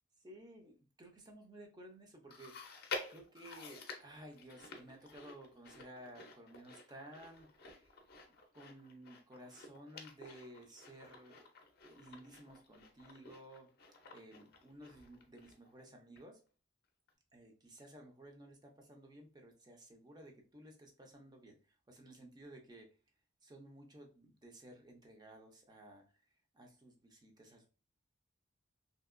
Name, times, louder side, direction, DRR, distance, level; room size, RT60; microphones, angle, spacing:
voice 1, 0.2-7.9 8.5-11.5 11.8-13.7 14.1-16.4 17.3-22.9 23.4-26.1 26.5-27.7, right 1 dB, 20° right, 3 dB, 0.5 m, -55 dB
Chewing mastication, 2.3-15.8 16.2-16.3 17.1-17.2, left 4 dB, 50° left, 0.5 m, -51 dB
2.8 x 2.8 x 2.4 m, 0.36 s
head